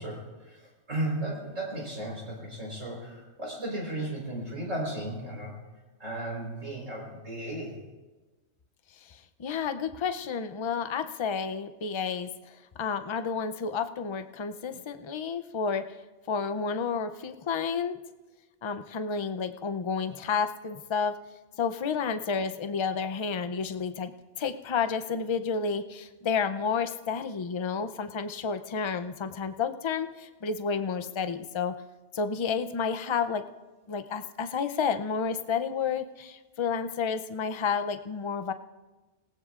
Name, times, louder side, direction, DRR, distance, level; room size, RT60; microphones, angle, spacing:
voice 1, 0.0-5.5 6.0-7.8, right 1 dB, 75° right, -2 dB, 4.7 m, -35 dB
voice 2, 9.0-15.8 16.3-18.0 18.6-21.1 21.6-24.1 24.4-31.7 32.1-33.4 33.9-38.5, left 6 dB, 40° left, 10 dB, 0.4 m, -31 dB
28.0 x 18.0 x 2.5 m, 1.2 s
omnidirectional pair, 1.3 m